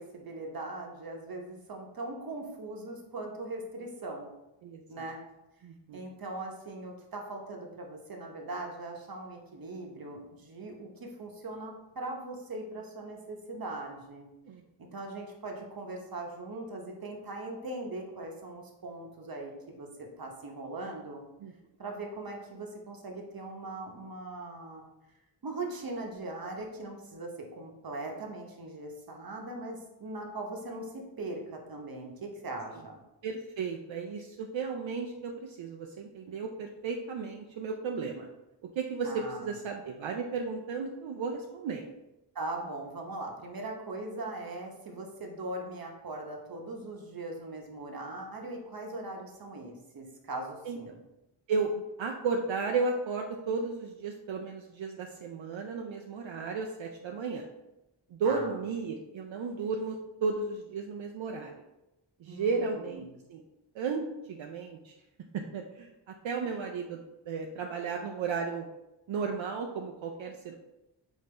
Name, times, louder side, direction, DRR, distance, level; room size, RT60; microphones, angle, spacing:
voice 1, 0.0-4.3 4.9-5.2 5.9-14.3 14.8-19.9 20.2-21.2 21.8-24.8 25.4-33.0 39.0-39.5 42.3-51.0 58.2-58.5 62.3-63.2, right 2 dB, 50° right, 1 dB, 0.9 m, -40 dB
voice 2, 4.6-5.0 5.6-6.0 14.5-14.6 21.4-21.5 33.2-38.3 38.8-41.9 50.7-50.9 51.5-57.5 58.1-60.0 60.2-61.5 62.2-63.4 63.7-64.9 65.3-65.9 66.2-67.0 67.3-68.7 69.1-70.5, right 4 dB, 80° right, 2 dB, 0.5 m, -34 dB
5.2 x 2.7 x 3.3 m, 0.93 s
wide cardioid pair, 80°, 45 cm